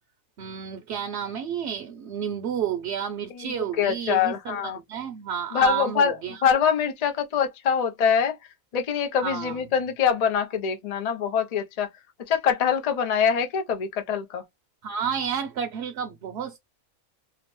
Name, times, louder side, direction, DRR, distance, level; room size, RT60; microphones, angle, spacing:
voice 1, 0.4-6.4 9.2-9.7 14.8-16.6, right 8 dB, 65° right, 0.7 m, -31 dB
voice 2, 3.3-4.8 5.5-6.2 6.4-8.3 8.7-11.9 12.3-14.4, left 7 dB, 90° left, 0.3 m, -24 dB
2.8 x 2.0 x 3.0 m
omnidirectional pair, 1.5 m